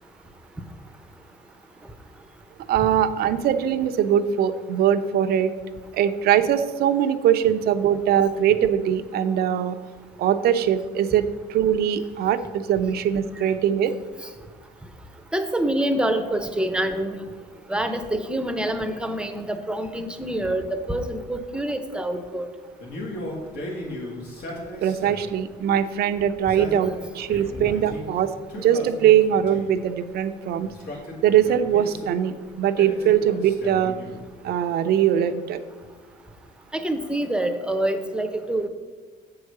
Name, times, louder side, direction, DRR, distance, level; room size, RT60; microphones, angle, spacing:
voice 1, 2.7-5.5 5.9-9.8 10.2-13.9 24.8-30.7 31.2-34.0 34.4-35.6, right 9 dB, 70° right, 11 dB, 0.6 m, -21 dB
voice 2, 15.3-17.2 17.7-22.5 36.7-38.7, right 1 dB, 5° right, 7 dB, 0.7 m, -26 dB
Male speech man speaking, 22.8-25.4 26.3-28.1 28.5-29.8 30.6-32.2 32.8-34.3, left 1 dB, 75° left, 2.3 m, -36 dB
7.9 x 4.8 x 6.6 m, 1.4 s
cardioid pair, 110°, 17 cm